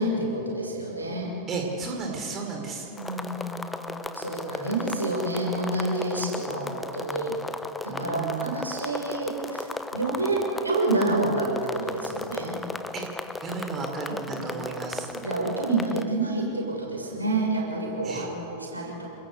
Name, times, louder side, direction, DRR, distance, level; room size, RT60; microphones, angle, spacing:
voice 1, 0.0-1.4 2.9-7.4 7.8-12.6 14.4-14.8 15.1-19.1, right 2 dB, 80° right, -1 dB, 6.9 m, -28 dB
voice 2, 1.5-2.9 7.9-8.5 12.9-13.0 13.4-15.1 18.0-18.3, right 4 dB, 25° right, 1 dB, 4.9 m, -33 dB
sound 1, 3.0-16.0, left 2 dB, 10° left, 1.2 m, -36 dB
28.5 x 22.0 x 8.3 m, 2.8 s
figure-of-eight pair, 90°, 0 cm